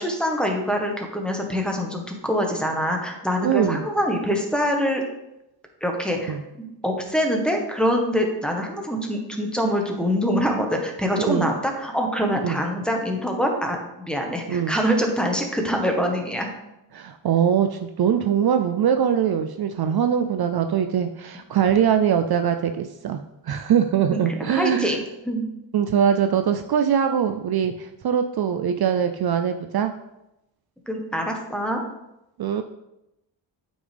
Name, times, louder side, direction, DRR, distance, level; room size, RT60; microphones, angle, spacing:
voice 1, 0.0-5.0 5.8-6.4 6.8-16.5 24.1-25.0 25.2-25.4 30.9-31.8, equal, ahead, 2 dB, 1.3 m, -24 dB
voice 2, 3.4-3.8 6.3-6.4 11.3-11.5 12.4-12.6 14.5-14.8 16.9-25.0 25.7-29.9 32.4-32.6, right 8 dB, 55° right, 7 dB, 0.5 m, -22 dB
8.6 x 5.3 x 3.4 m, 0.88 s
wide cardioid pair, 100°, 46 cm